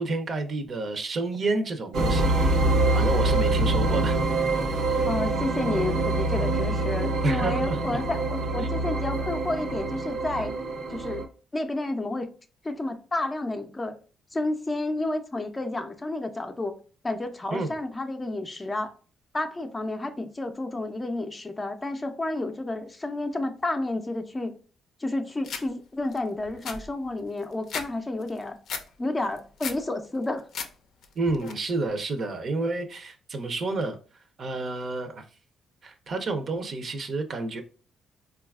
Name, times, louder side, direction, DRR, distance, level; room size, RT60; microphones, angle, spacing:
voice 1, 0.0-2.6 2.9-4.2 7.2-8.0 17.5-17.8 31.2-34.0 34.4-35.2 35.8-37.6, right 2 dB, 50° right, 0.6 m, -30 dB
sound 1, 1.9-11.2, right 2 dB, 85° right, 0.7 m, -25 dB
voice 2, 5.1-10.5 10.9-11.2 11.5-12.3 12.6-13.9 14.3-16.7 17.0-18.9 19.3-24.5 25.0-28.6 29.0-30.4, left 2 dB, 20° left, 0.5 m, -30 dB
sound 2, 25.4-25.6 26.1-26.2 26.4-27.9 28.2-28.8 29.2-29.8 30.2-30.7 31.0-31.5, left 5 dB, 70° left, 0.5 m, -35 dB
3.9 x 2.3 x 2.3 m
cardioid pair, 90°, 0 cm